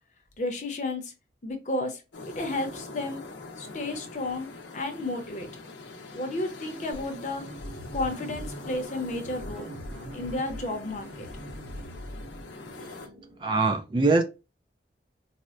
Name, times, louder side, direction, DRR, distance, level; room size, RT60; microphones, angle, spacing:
voice 1, 0.4-1.1 1.4-2.0 2.4-3.2 3.6-5.5 6.1-7.5 7.9-9.7 10.1-11.3, left 2 dB, 40° left, 0.7 m, -32 dB
sound 1, 2.1-13.1, left 3 dB, 85° left, 0.6 m, -44 dB
sound 2, 2.2-13.5, right 3 dB, 45° right, 1.3 m, -51 dB
sound 3, 6.9-12.7, equal, 65° right, 0.6 m, -42 dB
voice 2, 13.4-14.2, right 3 dB, 25° right, 0.3 m, -23 dB
4.1 x 2.1 x 2.4 m
head